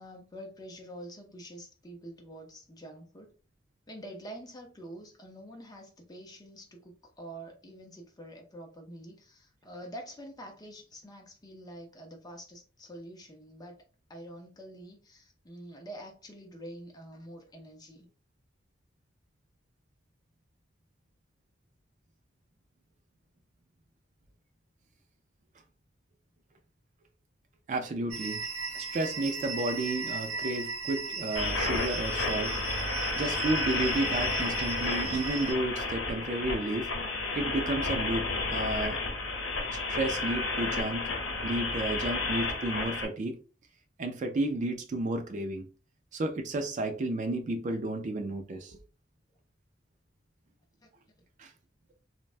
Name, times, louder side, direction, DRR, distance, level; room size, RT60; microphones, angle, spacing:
voice 1, 0.0-3.3 3.9-13.8 14.1-18.1 50.8-50.9, right 1 dB, 20° left, 0.6 m, -46 dB
voice 2, 27.7-28.5 28.7-32.6 33.2-36.9 37.3-39.0 39.7-41.1 41.4-43.4 44.0-45.7 46.1-48.8 51.4-51.5, right 2 dB, 40° right, 0.4 m, -32 dB
sound 1, 28.1-35.5, right 4 dB, 85° right, 1.0 m, -37 dB
sound 2, 31.4-43.1, left 3 dB, 85° left, 0.8 m, -32 dB
3.2 x 2.2 x 2.4 m
head